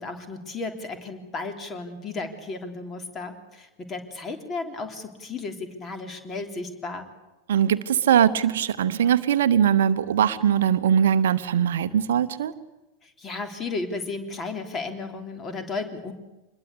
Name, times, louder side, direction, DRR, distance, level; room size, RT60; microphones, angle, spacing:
voice 1, 0.0-7.1 13.0-16.1, left 3 dB, 25° left, 6 dB, 3.5 m, -34 dB
voice 2, 7.5-12.5, right 9 dB, 60° right, 13 dB, 1.0 m, -21 dB
26.0 x 21.0 x 8.4 m, 1.0 s
figure-of-eight pair, 90°, 0 cm